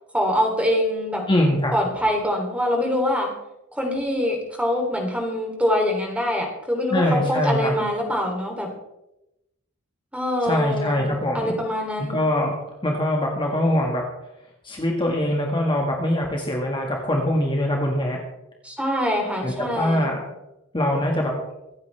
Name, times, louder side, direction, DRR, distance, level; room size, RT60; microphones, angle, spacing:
voice 1, 0.1-1.2 1.7-3.3 3.7-8.7 10.1-12.2 18.6-20.1, left 1 dB, 5° right, 0 dB, 3.3 m, -24 dB
voice 2, 1.3-1.7 6.9-7.7 10.4-11.6 12.0-12.5 12.8-14.0 14.6-18.2 19.4-20.2 20.7-21.3, left 1 dB, 25° left, 0 dB, 1.9 m, -23 dB
25.0 x 9.4 x 3.5 m, 0.89 s
head